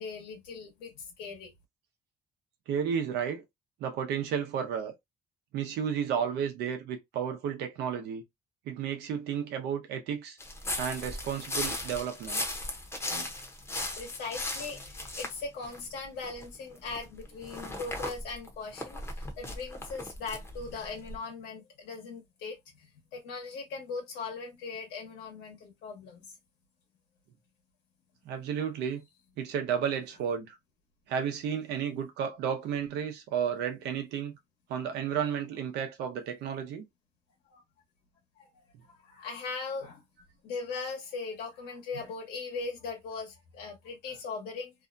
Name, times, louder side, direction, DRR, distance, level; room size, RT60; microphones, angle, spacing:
voice 1, 0.0-1.5 14.0-26.4 37.5-37.6 38.4-38.5 38.9-40.0 40.4-44.7, left 4 dB, 80° left, 1.1 m, -39 dB
voice 2, 2.7-3.4 3.8-4.9 5.5-8.2 8.7-10.4 10.8-12.4 13.1-13.3 28.2-29.0 29.4-30.6 31.1-34.3 34.7-36.8, right 8 dB, 80° right, 0.8 m, -32 dB
sound 1, 10.4-16.5 16.8-21.2, left 2 dB, 15° left, 0.8 m, -37 dB
2.7 x 2.2 x 2.6 m
cardioid pair, 110°, 17 cm